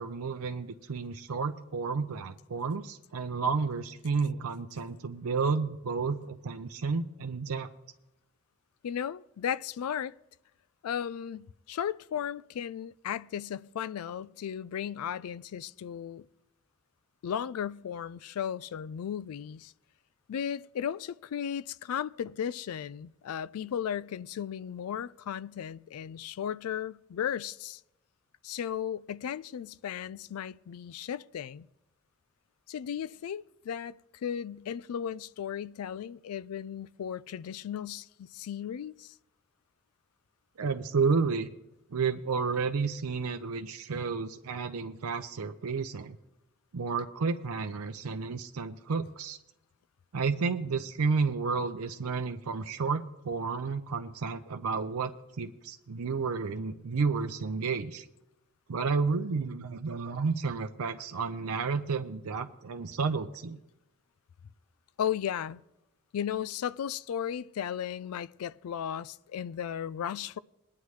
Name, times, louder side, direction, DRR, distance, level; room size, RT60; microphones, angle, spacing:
voice 1, 0.0-7.7 40.6-41.5 41.9-46.2 46.7-49.4 50.1-58.1 58.7-63.6, right 4 dB, 80° right, 0.5 m, -31 dB
voice 2, 8.8-10.1 10.8-16.3 17.2-19.7 20.3-27.8 28.4-31.7 32.7-39.1 65.0-65.6 66.1-70.4, left 9 dB, 80° left, 0.3 m, -35 dB
21.0 x 9.6 x 3.2 m
head